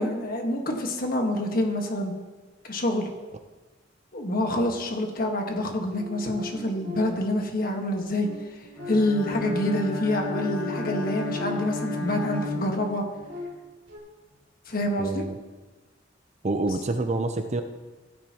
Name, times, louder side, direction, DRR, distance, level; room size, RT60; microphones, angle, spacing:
voice 1, 0.0-2.1 2.6-3.1 4.1-8.3 8.9-13.0 14.7-15.3, left 1 dB, 50° left, 3 dB, 1.5 m, -27 dB
sound 1, 5.9-7.4 8.0-12.0 12.5-14.0, left 2 dB, 55° right, 3.3 m, -40 dB
Bowed string instrument, 8.8-13.4, left 3 dB, 85° left, 1.5 m, -33 dB
voice 2, 15.0-15.4 16.4-17.6, right 2 dB, 35° right, 7 dB, 0.6 m, -27 dB
16.0 x 9.4 x 3.0 m, 1.2 s
head